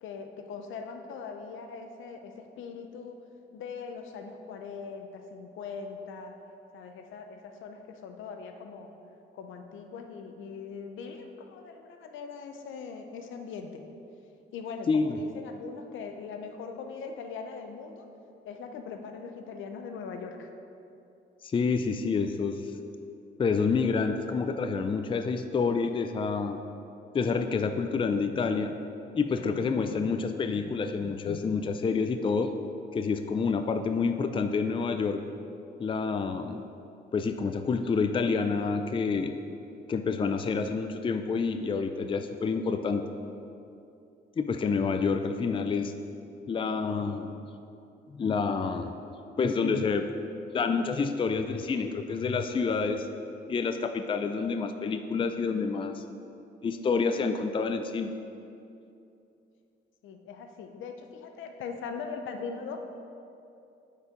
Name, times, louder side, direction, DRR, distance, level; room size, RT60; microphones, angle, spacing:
voice 1, 0.0-3.2 3.5-6.3 6.7-8.9 9.3-13.8 14.5-18.1 18.5-20.5 45.3-45.4 60.0-62.8, left 5 dB, 80° left, 5 dB, 0.7 m, -41 dB
voice 2, 14.9-15.2 21.4-22.7 23.4-26.6 27.1-28.7 29.1-32.5 32.9-35.2 35.8-36.6 37.1-39.3 39.9-43.0 44.4-45.9 46.5-47.3 48.1-48.9 49.4-50.1 50.5-53.1 53.5-56.0 56.6-58.1, left 5 dB, 25° left, 8 dB, 0.4 m, -28 dB
8.1 x 4.6 x 5.1 m, 2.7 s
cardioid pair, 90°, 20 cm